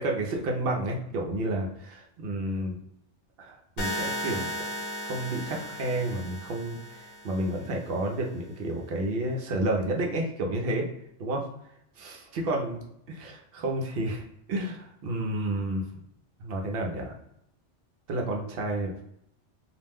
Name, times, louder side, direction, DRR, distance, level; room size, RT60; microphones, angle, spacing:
voice 1, 0.0-2.8 3.4-4.6 5.0-10.9 11.2-11.5 12.0-12.8 13.1-15.8 16.4-17.2 18.1-18.9, right 1 dB, 65° right, 0 dB, 0.7 m, -30 dB
sound 1, 3.8-7.8, equal, 75° left, 1.0 m, -35 dB
2.4 x 2.1 x 3.4 m, 0.76 s
omnidirectional pair, 1.2 m